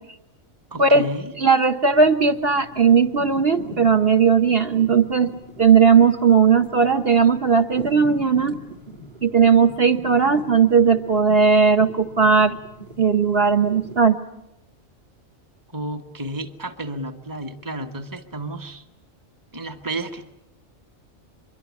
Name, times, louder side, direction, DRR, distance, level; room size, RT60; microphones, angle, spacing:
voice 1, 0.7-1.3 15.7-18.8 19.5-20.3, right 1 dB, 15° right, 6 dB, 1.2 m, -32 dB
voice 2, 1.4-5.3 5.6-8.6 9.2-12.6 13.0-14.2, right 5 dB, 50° right, 4 dB, 1.3 m, -17 dB
sound 1, 1.9-14.0, right 1 dB, 30° right, 2.1 m, -41 dB
25.0 x 23.5 x 8.4 m, 0.90 s
omnidirectional pair, 1.4 m